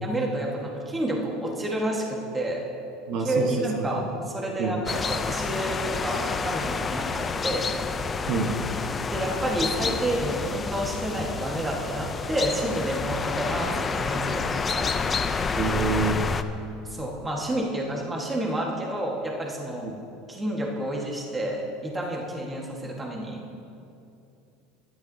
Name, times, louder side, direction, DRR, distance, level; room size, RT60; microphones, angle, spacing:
voice 1, 0.0-2.6 3.2-7.6 9.1-15.1 16.9-19.9 20.3-23.4, right 1 dB, 10° right, -2 dB, 1.4 m, -30 dB
voice 2, 3.1-3.7 4.6-4.8 8.3-8.5 15.6-16.2 19.8-19.9, right 4 dB, 45° right, 2 dB, 1.2 m, -26 dB
sound 1, 4.9-16.4, left 5 dB, 15° left, 0.4 m, -29 dB
24.0 x 11.5 x 2.7 m, 2.6 s
cardioid pair, 175°, 0 cm